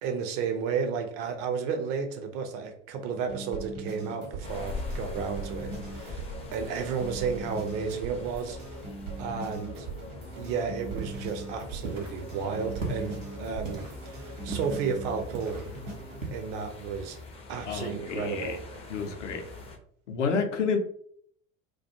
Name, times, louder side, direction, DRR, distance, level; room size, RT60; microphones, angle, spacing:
voice 1, 0.0-8.6 9.2-9.9 10.4-15.7 16.3-17.2 17.5-18.6, right 6 dB, 40° right, 0.4 m, -32 dB
sound 1, 3.3-16.2, right 2 dB, 70° right, 0.9 m, -40 dB
sound 2, 4.4-19.8, left 3 dB, 15° left, 0.4 m, -43 dB
sound 3, 10.8-16.3, right 3 dB, 85° right, 0.6 m, -40 dB
voice 2, 17.7-18.6 18.9-19.4 20.1-20.8, left 5 dB, 75° left, 0.6 m, -29 dB
2.3 x 2.2 x 2.7 m
figure-of-eight pair, 70°, 37 cm